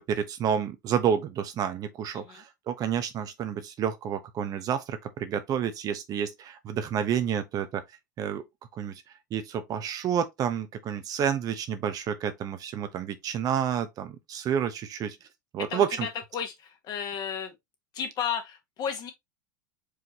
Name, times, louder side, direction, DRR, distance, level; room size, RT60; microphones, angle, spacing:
voice 1, 0.0-7.8 8.2-8.4 8.7-9.0 9.3-15.2 15.5-16.1, right 8 dB, 40° right, 0.9 m, -29 dB
voice 2, 15.7-17.5 17.9-19.1, left 7 dB, 40° left, 1.6 m, -33 dB
4.8 x 3.7 x 2.9 m
hypercardioid pair, 90°, 10 cm